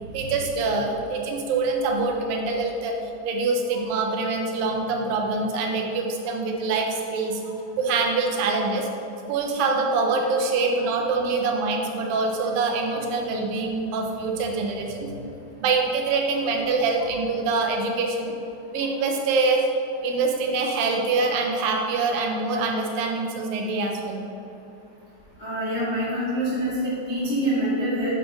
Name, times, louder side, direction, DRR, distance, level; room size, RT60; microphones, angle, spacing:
voice 1, 0.1-2.9 3.2-8.9 9.3-15.2 15.6-18.3 18.7-19.7 20.0-24.2, right 3 dB, 80° right, 1 dB, 2.5 m, -25 dB
voice 2, 25.4-28.1, equal, 75° left, -10 dB, 0.6 m, -25 dB
8.2 x 3.5 x 5.3 m, 2.7 s
omnidirectional pair, 4.0 m